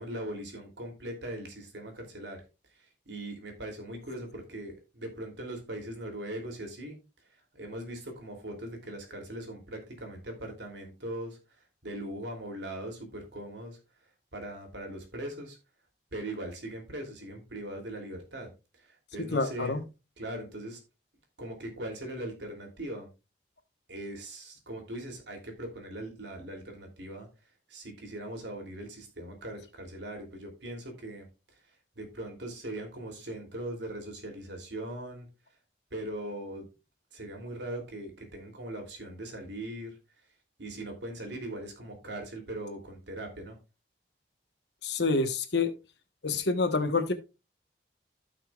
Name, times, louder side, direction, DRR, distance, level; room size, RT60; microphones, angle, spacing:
voice 1, 0.0-2.4 2.7-7.0 7.5-13.8 14.3-15.6 16.1-19.8 20.2-20.8 21.4-23.1 23.9-27.3 27.7-31.3 32.0-35.3 35.9-36.7 37.1-39.9 40.6-43.6, right 1 dB, 80° right, 3 dB, 2.9 m, -40 dB
voice 2, 19.2-19.8 44.8-45.7 46.2-47.1, left 3 dB, 75° left, 8 dB, 1.2 m, -27 dB
15.5 x 5.8 x 2.4 m, 0.28 s
head